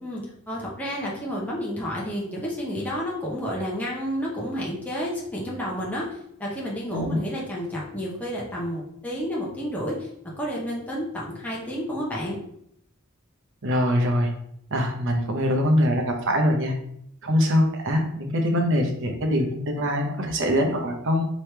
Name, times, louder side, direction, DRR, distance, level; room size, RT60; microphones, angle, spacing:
voice 1, 0.0-10.1 10.4-12.4, equal, 5° left, -5 dB, 0.7 m, -30 dB
voice 2, 13.6-14.3 14.7-16.7 17.2-21.2, equal, 60° right, 2 dB, 0.8 m, -23 dB
3.4 x 3.0 x 4.4 m, 0.73 s
head